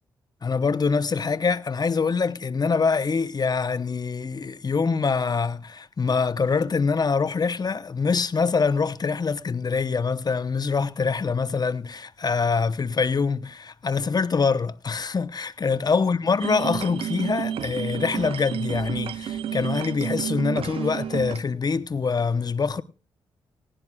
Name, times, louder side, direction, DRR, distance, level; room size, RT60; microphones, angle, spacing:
voice 1, 0.4-22.8, left 5 dB, 40° left, 1.0 m, -24 dB
sound 1, 16.4-21.4, right 9 dB, 65° right, 0.6 m, -30 dB
19.0 x 16.5 x 2.4 m
supercardioid pair, 50°, 10 cm